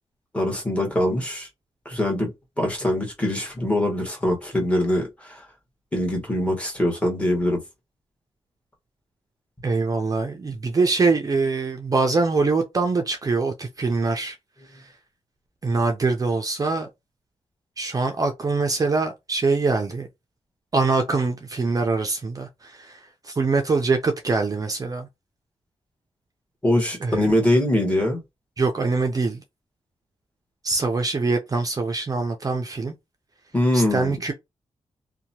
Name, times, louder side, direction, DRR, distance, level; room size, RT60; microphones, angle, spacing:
voice 1, 0.3-1.5 1.8-5.4 5.9-7.6 26.6-28.2 33.5-34.1, left 1 dB, 10° left, 1.3 m, -23 dB
voice 2, 9.6-14.4 14.8-14.9 15.6-16.9 17.8-20.1 20.7-25.1 27.0-27.3 28.6-29.4 30.6-32.9 33.7-34.3, right 3 dB, 35° right, 0.4 m, -23 dB
2.8 x 2.2 x 2.7 m
cardioid pair, 90°, 11 cm